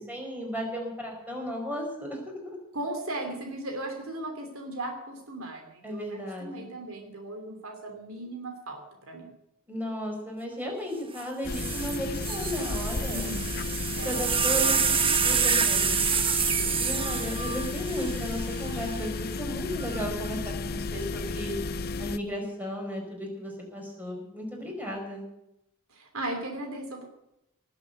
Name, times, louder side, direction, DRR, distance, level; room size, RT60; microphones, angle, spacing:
voice 1, 0.0-2.6 5.8-6.7 9.7-13.3 14.0-16.0 16.8-21.5 22.0-25.2, equal, 10° right, 0 dB, 5.1 m, -35 dB
voice 2, 2.7-9.3 13.1-13.5 13.9-14.1 14.4-14.6 16.6-16.8 17.4-17.6 25.9-27.1, right 1 dB, 70° right, 3 dB, 3.1 m, -37 dB
sound 1, 11.2-11.3 11.5-18.9 19.8-20.3, right 6 dB, 25° right, 1.2 m, -28 dB
sound 2, 11.4-22.2, left 3 dB, 45° left, 0.7 m, -33 dB
19.0 x 8.1 x 9.0 m, 0.84 s
head